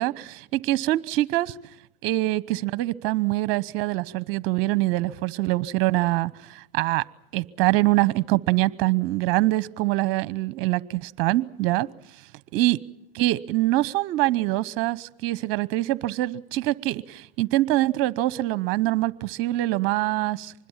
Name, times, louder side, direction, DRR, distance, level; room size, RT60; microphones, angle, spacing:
voice 1, 0.0-1.5 2.0-7.0 7.3-11.9 12.5-12.8 13.1-20.5, right 17 dB, 45° right, 1.0 m, -24 dB
25.5 x 21.0 x 7.3 m
hypercardioid pair, 125°, 30 cm